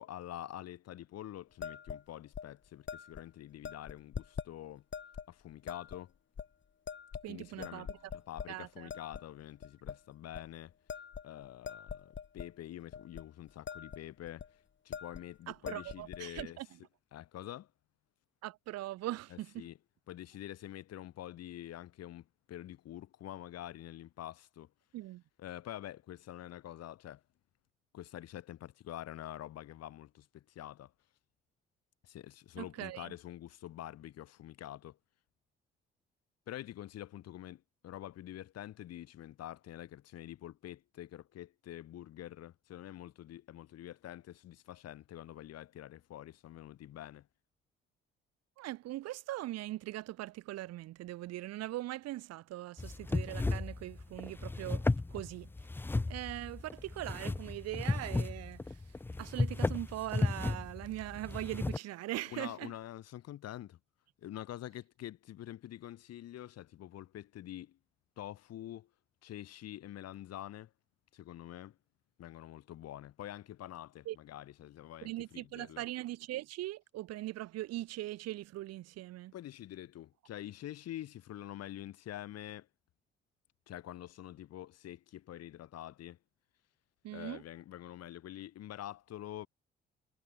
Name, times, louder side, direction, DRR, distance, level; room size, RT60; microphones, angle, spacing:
voice 1, 0.0-4.8 5.3-6.1 7.3-10.7 11.2-14.5 14.9-16.6 17.1-17.7 19.3-19.8 20.1-24.7 25.4-27.2 27.9-30.9 32.0-35.0 36.5-47.3 62.3-63.8 64.2-67.8 68.2-68.9 69.2-70.7 71.1-71.8 72.2-75.8 79.3-82.7 83.7-86.2 87.1-89.5, left 12 dB, 55° left, 3.3 m, -46 dB
sound 1, 1.6-2.0 2.3-2.5 2.9-3.2 3.6-4.5 4.9-5.3 5.7-6.0 6.4-6.5 6.9-7.3 7.6-8.5 8.9-9.2 9.6-10.0 10.3-10.5 10.9-12.5 12.9-13.2 13.5-14.0 14.3-14.5 14.9-15.3 15.5-16.5, left 7 dB, 40° left, 3.8 m, -43 dB
voice 2, 7.2-7.9 8.5-8.9 15.5-16.7 18.4-19.7 24.9-25.2 32.6-33.1 48.6-55.5 56.1-58.8 59.2-62.7 74.0-74.2 75.0-79.3 87.0-87.4, right 16 dB, 55° right, 1.4 m, -41 dB
sound 2, 52.8-61.8, left 2 dB, 5° left, 0.4 m, -34 dB
figure-of-eight pair, 40°, 30 cm